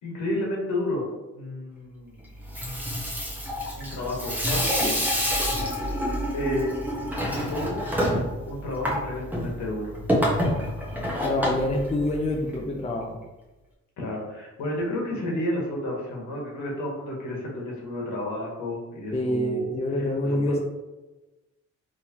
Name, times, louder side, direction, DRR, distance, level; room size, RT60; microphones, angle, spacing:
voice 1, 0.0-1.1 1.3-2.2 3.7-5.0 6.3-6.7 7.5-7.9 8.5-9.9 14.0-19.7 19.9-20.6, left 1 dB, 75° left, -2 dB, 1.4 m, -31 dB
Water tap faucet / Sink (filling or washing), 2.4-12.6, equal, 5° right, 1.0 m, -28 dB
voice 2, 11.2-13.2 19.1-20.6, left 1 dB, 20° left, 1 dB, 0.5 m, -26 dB
3.4 x 3.1 x 2.9 m, 1.1 s
cardioid pair, 90°, 30 cm